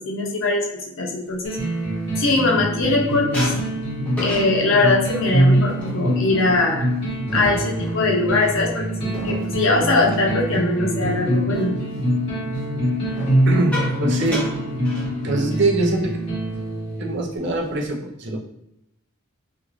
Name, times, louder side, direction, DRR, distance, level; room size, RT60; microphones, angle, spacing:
voice 1, 0.0-1.6 2.2-3.5 4.2-6.9 7.3-11.7, left 3 dB, 65° left, 0 dB, 0.6 m, -21 dB
sound 1, 1.4-17.4, right 1 dB, 30° left, 1.2 m, -24 dB
sound 2, 1.5-2.9 3.3-11.2 11.5-11.8 13.0-15.6 15.9-16.1 16.4-16.7 17.2-17.9, left 1 dB, 5° left, 0.7 m, -35 dB
voice 2, 13.5-14.4 15.2-16.2 17.0-18.5, right 2 dB, 55° right, 0 dB, 0.5 m, -23 dB
2.5 x 2.5 x 3.0 m, 0.82 s
head